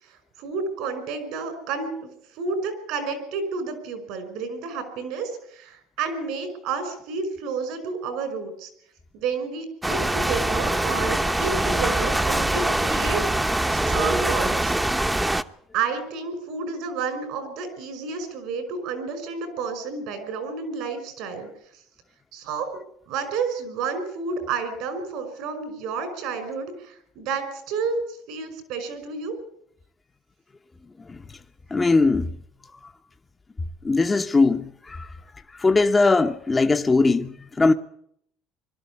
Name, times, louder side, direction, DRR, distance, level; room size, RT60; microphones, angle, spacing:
voice 1, 0.0-8.7 9.1-14.7 15.7-21.5 22.3-22.7 23.1-29.3, right 5 dB, 75° right, 5.5 m, -30 dB
sound 1, 9.8-15.4, right 1 dB, 10° right, 1.0 m, -23 dB
voice 2, 31.7-32.4 33.8-35.1 35.5-37.7, left 3 dB, 25° left, 1.0 m, -20 dB
22.0 x 12.5 x 9.7 m
supercardioid pair, 80°, 0 cm